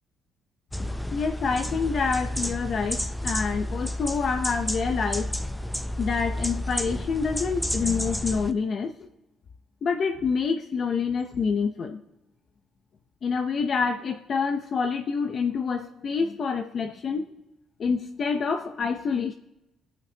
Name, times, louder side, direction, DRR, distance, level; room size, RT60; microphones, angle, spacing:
sound 1, 0.7-8.5, left 1 dB, 5° left, 0.5 m, -31 dB
voice 1, 0.8-5.3 6.0-8.9 9.8-12.0 13.2-17.2 17.8-19.3, left 5 dB, 50° left, 6 dB, 0.7 m, -27 dB
22.0 x 8.8 x 2.8 m, 0.94 s
cardioid pair, 115°, 0 cm